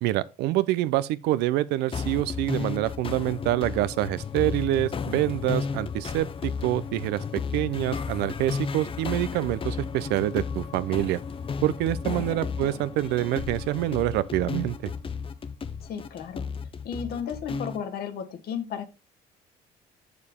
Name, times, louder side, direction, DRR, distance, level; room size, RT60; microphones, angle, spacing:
voice 1, 0.0-7.2 7.5-11.2 11.6-14.8, right 15 dB, 90° right, 0.5 m, -26 dB
sound 1, 1.9-17.8, left 5 dB, 30° left, 0.6 m, -33 dB
voice 2, 12.1-12.5 15.8-16.5 16.8-18.9, left 7 dB, 65° left, 1.3 m, -34 dB
6.8 x 6.5 x 3.6 m
cardioid pair, 110°, 17 cm